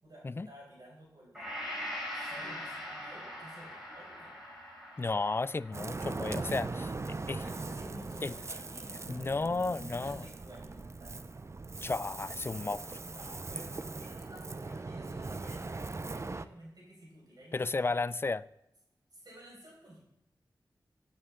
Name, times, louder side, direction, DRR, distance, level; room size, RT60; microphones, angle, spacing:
voice 1, 0.0-4.4 7.4-11.2 13.0-18.0 19.1-20.0, right 1 dB, 55° right, -4 dB, 5.2 m, -53 dB
Gong, 1.3-9.4, equal, 5° right, 5.2 m, -44 dB
voice 2, 5.0-7.4 8.2-8.3 9.1-10.2 11.8-13.0 17.5-18.4, left 3 dB, 30° left, 17 dB, 0.4 m, -33 dB
Ocean, 5.7-16.5, right 3 dB, 35° right, 0.5 m, -40 dB
14.0 x 9.4 x 3.7 m, 0.81 s
wide cardioid pair, 65°, 8 cm